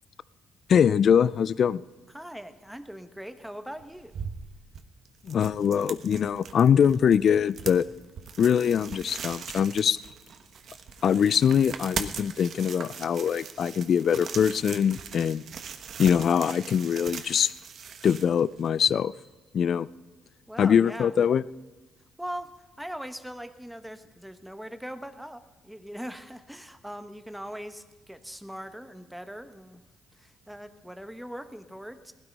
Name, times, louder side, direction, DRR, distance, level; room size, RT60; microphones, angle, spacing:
voice 1, 0.7-1.8 5.3-7.9 8.4-10.0 11.0-15.4 16.0-17.5 18.0-19.1 19.5-19.9 20.6-21.4, left 8 dB, 60° left, 19 dB, 0.4 m, -23 dB
voice 2, 2.1-4.2 20.5-21.2 22.2-29.8 30.1-32.1, equal, 5° right, 9 dB, 1.2 m, -41 dB
sound 1, 3.8-18.9, right 6 dB, 60° right, 1.1 m, -40 dB
18.0 x 12.5 x 5.4 m, 1.2 s
cardioid pair, 90°, 0 cm